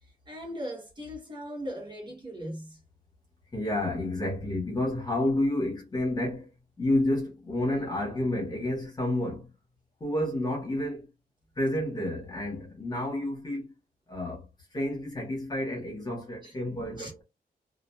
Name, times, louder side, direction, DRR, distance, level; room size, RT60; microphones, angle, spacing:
voice 1, 0.0-2.8 16.4-16.5 17.0-17.1, equal, 30° right, 0.9 m, -39 dB
voice 2, 3.5-6.5 6.8-9.5 10.0-11.1 11.6-13.7 14.1-17.2, left 1 dB, 25° left, 1.2 m, -30 dB
3.0 x 2.3 x 2.2 m
wide cardioid pair, 160°, 16 cm